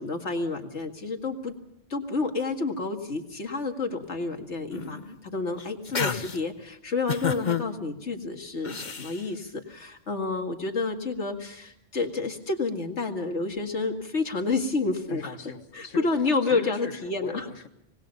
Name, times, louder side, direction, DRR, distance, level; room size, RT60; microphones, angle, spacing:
voice 1, 0.0-1.5 1.9-15.3 15.7-17.5, left 3 dB, 65° left, 4 dB, 2.4 m, -29 dB
sound 1, 4.7-5.2 5.6-6.4 7.1-7.6 8.6-9.2, left 6 dB, 40° left, 1.1 m, -30 dB
voice 2, 15.1-16.1 16.4-17.7, left 5 dB, 90° left, 8 dB, 1.8 m, -39 dB
25.5 x 19.5 x 5.4 m, 0.76 s
omnidirectional pair, 1.3 m